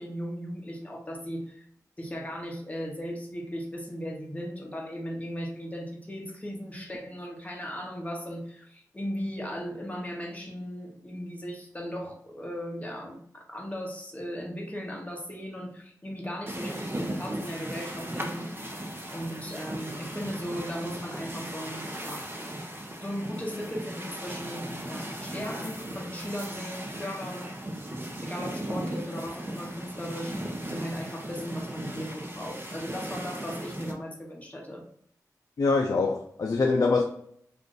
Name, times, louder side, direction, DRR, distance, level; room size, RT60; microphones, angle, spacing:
voice 1, 0.0-1.7 2.0-18.6 19.1-22.6 23.0-27.5 28.2-30.4 30.7-34.8, equal, 20° left, 0 dB, 0.9 m, -37 dB
sound 1, 16.5-33.9, right 1 dB, 30° right, 0.6 m, -37 dB
voice 2, 35.6-37.0, left 3 dB, 60° left, 2 dB, 0.4 m, -24 dB
2.5 x 2.5 x 3.6 m, 0.67 s
wide cardioid pair, 70°, 7 cm